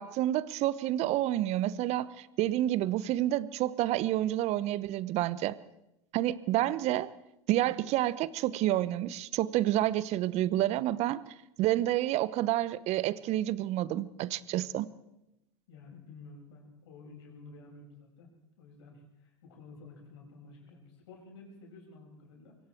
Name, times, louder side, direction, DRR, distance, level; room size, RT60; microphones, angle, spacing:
voice 1, 0.0-5.6 6.1-7.1 7.5-11.2 11.6-14.9, right 14 dB, 45° right, 18 dB, 1.0 m, -29 dB
voice 2, 15.7-22.6, left 3 dB, 70° left, 0 dB, 7.1 m, -52 dB
25.0 x 23.0 x 4.6 m, 0.90 s
hypercardioid pair, 80°, 15 cm